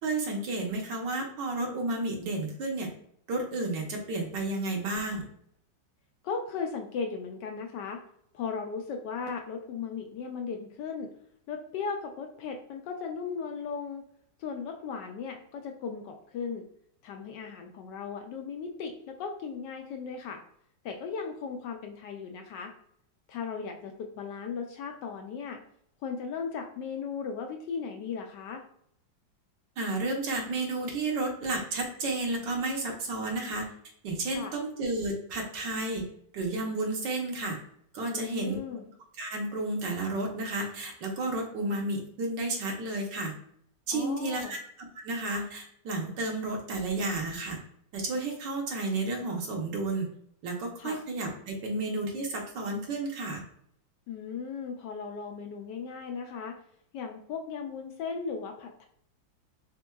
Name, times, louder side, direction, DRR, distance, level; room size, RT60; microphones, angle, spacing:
voice 1, 0.0-2.9 3.3-5.2 29.8-33.7 34.0-36.1 36.3-37.6 37.9-38.6 39.2-43.3 43.9-47.6 47.9-50.1 50.4-53.4, right 2 dB, 65° right, 1 dB, 1.5 m, -32 dB
voice 2, 6.2-8.0 8.3-11.1 11.5-14.0 14.4-16.6 17.0-20.4 20.8-22.7 23.3-25.6 26.0-28.6 34.2-34.5 38.1-38.8 43.9-44.5 50.8-51.0 54.1-56.6 56.9-58.9, left 5 dB, 75° left, 3 dB, 1.1 m, -37 dB
4.4 x 3.9 x 2.3 m, 0.67 s
omnidirectional pair, 2.1 m